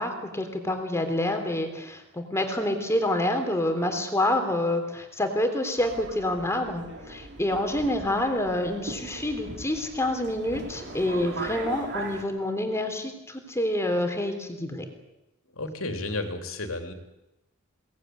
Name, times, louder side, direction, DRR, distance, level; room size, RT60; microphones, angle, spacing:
voice 1, 0.0-14.9, left 1 dB, 15° left, 6 dB, 3.4 m, -27 dB
Subway metro underground, 5.8-12.2, right 2 dB, 55° right, 3.6 m, -40 dB
voice 2, 15.5-16.9, left 2 dB, 70° left, 6 dB, 3.4 m, -32 dB
23.0 x 19.0 x 9.6 m, 0.92 s
head